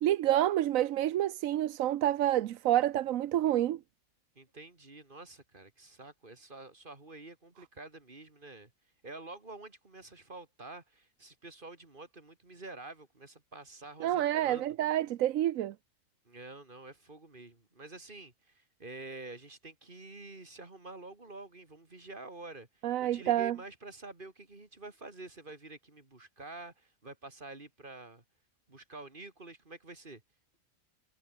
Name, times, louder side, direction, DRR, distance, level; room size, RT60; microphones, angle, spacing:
voice 1, 0.0-3.8 14.0-15.7 22.8-23.6, right 12 dB, 85° right, 1.1 m, -28 dB
voice 2, 4.3-8.7 9.0-14.8 16.2-28.2 28.7-30.2, right 2 dB, 40° right, 3.0 m, -48 dB
omnidirectional pair, 1.4 m